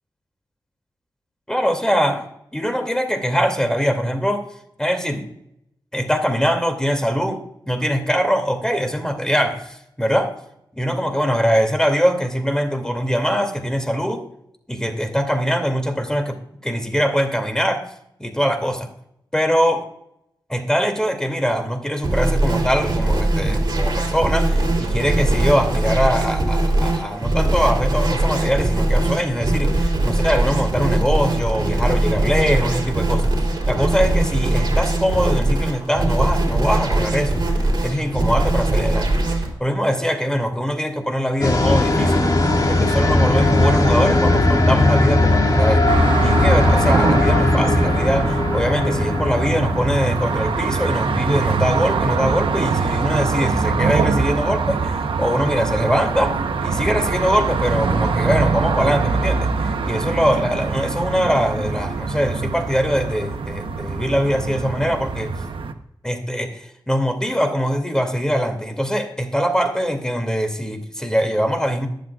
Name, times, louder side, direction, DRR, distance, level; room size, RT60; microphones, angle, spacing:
voice 1, 1.5-2.3 2.5-4.5 4.8-5.3 5.9-10.3 10.7-14.2 14.7-17.9 18.2-18.9 19.3-19.9 20.5-33.3 33.6-42.3 42.7-45.9 46.2-65.3 66.0-71.9, equal, 5° left, 6 dB, 2.5 m, -22 dB
sound 1, 22.0-39.5, right 2 dB, 50° right, 3.3 m, -20 dB
sound 2, 41.4-52.2, left 2 dB, 45° left, 2.4 m, -19 dB
sound 3, 45.9-65.7, right 4 dB, 80° right, 0.9 m, -23 dB
22.0 x 7.6 x 2.4 m, 0.76 s
cardioid pair, 45°, 9 cm